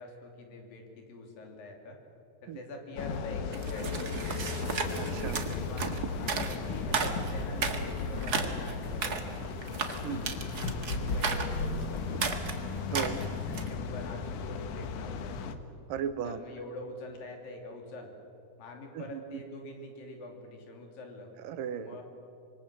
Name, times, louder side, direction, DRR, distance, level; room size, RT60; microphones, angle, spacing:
voice 1, 0.0-2.0 2.4-4.6 5.5-9.2 10.0-10.3 10.7-12.3 12.9-15.4 16.2-18.1 18.6-21.3 21.8-22.0, left 2 dB, 85° left, 3 dB, 4.7 m, -45 dB
sound 1, 3.0-15.6, left 5 dB, 70° left, 2.5 m, -37 dB
sound 2, 3.5-13.8, right 5 dB, 45° right, 1.4 m, -35 dB
voice 2, 4.9-5.4 10.0-10.4 12.9-13.2 15.9-16.4 18.9-19.4 21.4-22.0, right 8 dB, 80° right, 12 dB, 2.7 m, -36 dB
sound 3, 6.1-12.1, left 2 dB, 40° left, 1.9 m, -38 dB
26.0 x 23.5 x 7.6 m, 2.8 s
omnidirectional pair, 3.9 m